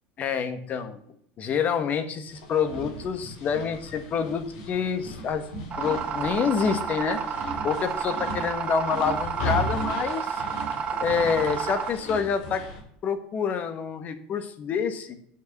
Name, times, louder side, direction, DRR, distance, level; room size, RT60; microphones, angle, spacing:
voice 1, 0.2-1.0 1.4-5.5 5.8-7.2 7.6-10.4 11.0-12.6 13.0-15.2, left 6 dB, 40° left, 10 dB, 1.5 m, -27 dB
sound 1, 2.3-12.8, left 1 dB, 75° left, 3.3 m, -37 dB
sound 2, 5.7-11.9, right 6 dB, 35° right, 2.0 m, -31 dB
9.2 x 6.7 x 6.8 m, 0.65 s
supercardioid pair, 120°, 4 cm